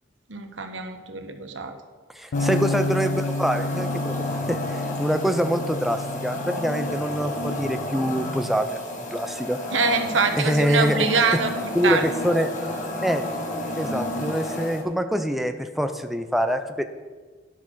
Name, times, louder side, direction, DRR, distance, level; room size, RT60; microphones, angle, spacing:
voice 1, 0.3-1.7 9.7-11.5 11.8-12.0, right 4 dB, 90° right, 7 dB, 1.0 m, -24 dB
voice 2, 2.1-9.6 10.3-11.1 11.3-11.4 11.7-12.5 13.0-13.3 13.8-16.9, equal, ahead, 7 dB, 0.5 m, -25 dB
sound 1, 2.3-8.6, left 2 dB, 85° left, 0.5 m, -31 dB
sound 2, 2.3-14.8, left 1 dB, 45° left, 1.4 m, -32 dB
10.5 x 6.1 x 6.3 m, 1.4 s
head